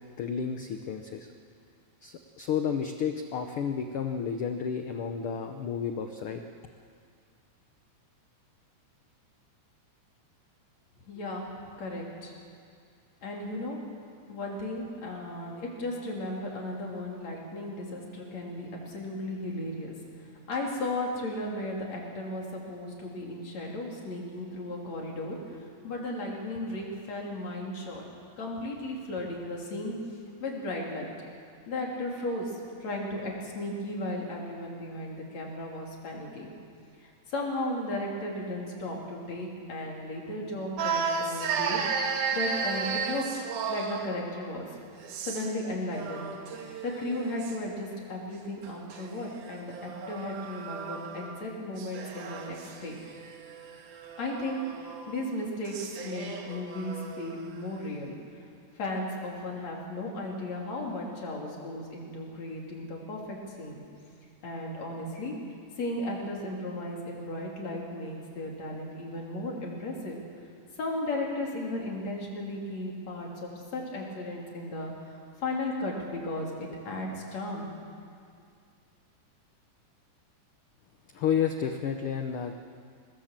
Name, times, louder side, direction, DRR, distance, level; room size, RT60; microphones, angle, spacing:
voice 1, 0.2-1.3 2.0-6.4 81.1-82.5, left 7 dB, 80° left, 6 dB, 1.2 m, -31 dB
voice 2, 11.1-12.3 13.2-13.8 14.3-28.0 28.4-31.1 31.7-36.5 37.0-43.2 43.7-44.7 45.3-46.3 46.8-53.0 54.2-58.2 58.8-63.8 64.4-65.4 65.8-70.2 70.8-77.7, left 1 dB, 55° left, -2 dB, 4.3 m, -35 dB
sound 1, 40.8-44.2 45.0-45.6 45.9-47.6 48.6-51.4 51.8-57.4, right 5 dB, 75° right, 3.0 m, -34 dB
24.0 x 19.5 x 7.4 m, 2.3 s
omnidirectional pair, 3.7 m